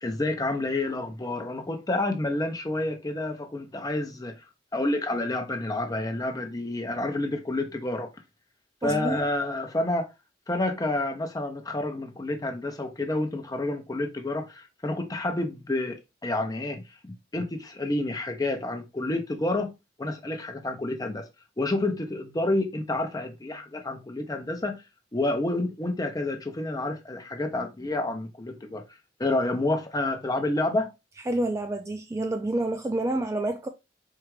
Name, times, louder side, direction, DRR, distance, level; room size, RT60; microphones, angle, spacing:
voice 1, 0.0-4.4 4.7-8.1 8.8-10.1 10.5-19.7 20.0-21.3 21.6-24.8 25.1-28.8 29.2-30.9, left 2 dB, 20° left, 0.6 m, -29 dB
voice 2, 8.8-9.2 31.3-33.7, right 1 dB, 15° right, 0.3 m, -28 dB
4.5 x 2.5 x 3.1 m
head